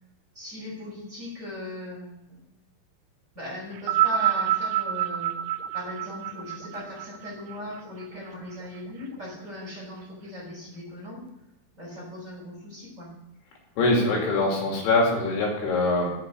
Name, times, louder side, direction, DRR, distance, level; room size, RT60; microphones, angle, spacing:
voice 1, 0.3-2.5 3.3-5.3 5.7-11.2 11.8-13.1, left 1 dB, 20° right, -5 dB, 4.8 m, -39 dB
sound 1, 3.8-8.3 9.2-9.3, right 11 dB, 80° right, 2.8 m, -27 dB
voice 2, 13.8-16.1, left 2 dB, 75° left, -1 dB, 4.6 m, -23 dB
12.5 x 8.7 x 5.4 m, 0.94 s
omnidirectional pair, 4.7 m